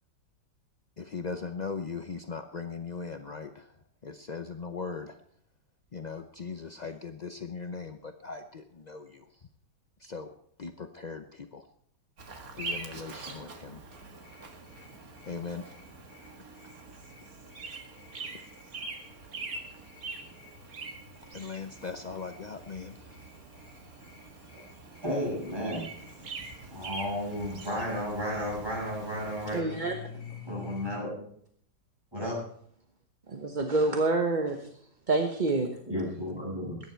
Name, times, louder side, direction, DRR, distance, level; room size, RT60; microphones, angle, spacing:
voice 1, 1.0-5.2 5.9-9.5 10.0-10.3 10.6-11.7 12.6-13.8 15.2-15.7 16.4-16.5 18.2-18.4 21.3-23.3, left 5 dB, 55° left, 6 dB, 0.4 m, -39 dB
Bird vocalization bird call bird song, 12.2-29.6, right 3 dB, 55° right, 2.1 m, -44 dB
sound 1, 13.9-31.0, left 3 dB, 70° left, 4.8 m, -51 dB
voice 2, 25.0-26.3 26.7-29.6 30.4-31.3 32.1-32.4 35.9-36.8, equal, 15° right, -4 dB, 7.5 m, -33 dB
voice 3, 29.5-29.9 33.3-34.7 35.1-35.7, right 3 dB, 30° right, 4 dB, 1.1 m, -27 dB
20.5 x 10.5 x 4.5 m, 0.66 s
omnidirectional pair, 1.8 m